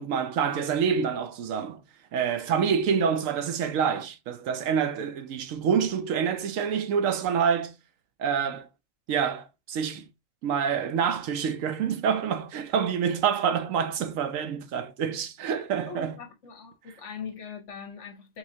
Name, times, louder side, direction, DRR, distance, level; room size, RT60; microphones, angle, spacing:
voice 1, 0.0-1.8 2.1-7.8 8.2-8.7 9.1-10.1 10.4-16.2, right 7 dB, 80° right, 1.1 m, -27 dB
voice 2, 15.9-18.4, left 6 dB, 65° left, 1.3 m, -41 dB
5.5 x 3.2 x 2.7 m
omnidirectional pair, 1.4 m